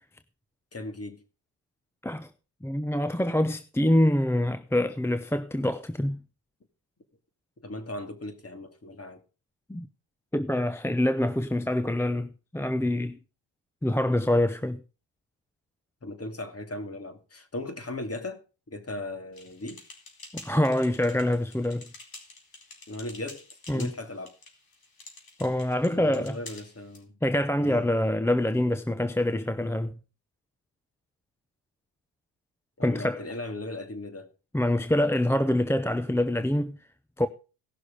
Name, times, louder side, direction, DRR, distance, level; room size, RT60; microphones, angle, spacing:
voice 1, 0.7-1.2 7.6-9.2 16.0-19.8 22.9-23.4 23.7-24.4 25.9-27.2 27.6-27.9 32.8-34.3, left 2 dB, 30° left, 2.7 m, -37 dB
voice 2, 2.6-6.2 9.7-9.9 10.3-13.2 13.8-14.8 20.3-21.9 23.7-23.9 25.4-26.4 27.2-29.9 32.8-33.2 34.5-36.8 37.2-37.3, left 1 dB, 5° left, 0.7 m, -25 dB
sound 1, 19.3-27.0, left 3 dB, 45° left, 4.1 m, -48 dB
17.0 x 6.3 x 5.2 m
supercardioid pair, 60°, 47 cm